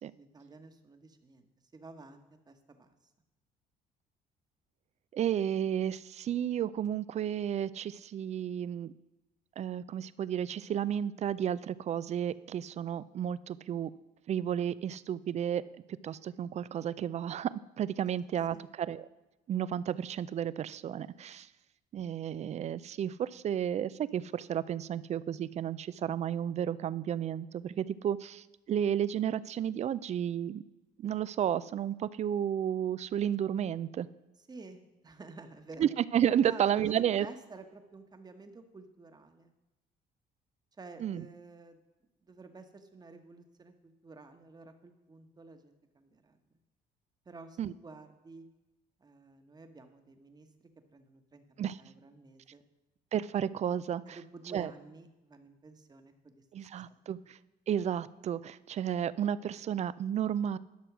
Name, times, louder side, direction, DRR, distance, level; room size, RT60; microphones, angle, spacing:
voice 1, 0.2-3.0 18.5-18.6 34.4-36.0 36.5-39.5 40.8-41.8 42.2-46.4 47.2-48.5 49.0-52.6 54.1-57.1, right 3 dB, 25° right, 7 dB, 1.2 m, -51 dB
voice 2, 5.1-8.9 9.6-13.9 14.3-15.6 16.0-19.0 19.5-21.5 21.9-30.6 31.0-34.1 35.8-37.3 41.0-41.2 47.6-47.7 51.6-51.8 53.1-54.2 54.5-54.7 56.5-57.4 57.7-60.6, right 9 dB, 40° right, 18 dB, 0.4 m, -32 dB
11.5 x 6.2 x 6.0 m, 1.1 s
cardioid pair, 110°, 17 cm